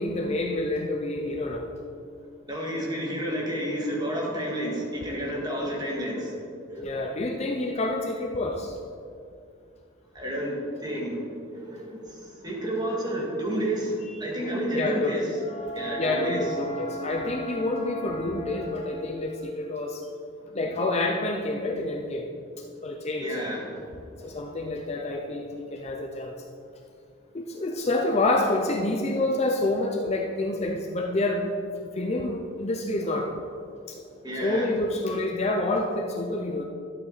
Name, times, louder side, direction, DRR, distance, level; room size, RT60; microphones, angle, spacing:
voice 1, 0.0-1.7 6.8-8.8 14.7-15.1 15.4-20.0 20.5-22.2 22.8-23.3 24.2-26.3 27.3-31.5 32.0-33.4 33.9-34.0 34.4-36.6, left 2 dB, 30° left, 2 dB, 0.6 m, -28 dB
voice 2, 2.5-6.4 6.7-6.9 10.1-15.3 15.5-16.5 20.4-20.7 23.2-23.9 24.2-24.3 34.2-34.7, right 1 dB, 20° right, -3 dB, 2.0 m, -31 dB
12.0 x 8.5 x 4.1 m, 2.4 s
head